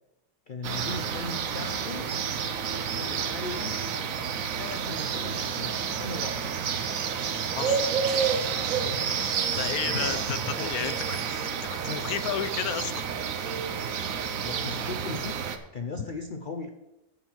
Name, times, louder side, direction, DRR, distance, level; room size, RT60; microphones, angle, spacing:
voice 1, 0.5-2.1 3.0-3.8 4.6-6.5 9.5-11.0 14.4-16.7, left 3 dB, 55° left, 5 dB, 0.5 m, -38 dB
sound 1, 0.6-15.6, right 7 dB, 65° right, 1.1 m, -30 dB
voice 2, 9.6-13.0 14.0-14.1 16.0-16.1, left 9 dB, 70° left, 11 dB, 1.1 m, -33 dB
10.5 x 7.6 x 4.6 m, 0.92 s
omnidirectional pair, 1.7 m